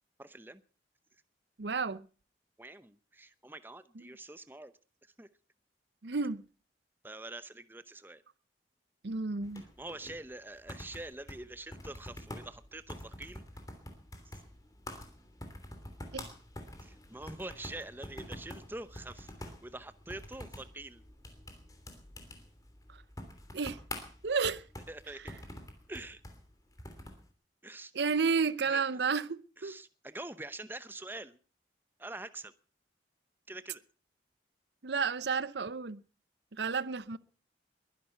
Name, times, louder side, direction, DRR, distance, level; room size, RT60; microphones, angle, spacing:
voice 1, 0.2-0.6 2.6-4.7 5.2-5.3 7.0-8.2 9.8-13.4 14.3-14.4 16.8-21.0 24.9-25.4 25.9-26.2 27.6-27.9 28.7-28.8 29.6-31.4 32.0-32.5 33.5-33.8, right 2 dB, 10° right, 0.7 m, -45 dB
voice 2, 1.6-2.1 4.0-4.1 6.0-6.4 9.0-9.6 16.1-16.3 22.9-23.0 23.5-23.8 24.2-24.6 27.9-29.8 34.8-36.0 36.5-37.2, right 5 dB, 70° right, 0.7 m, -31 dB
sound 1, 9.4-27.3, left 1 dB, 20° left, 3.1 m, -47 dB
21.5 x 11.0 x 5.7 m
head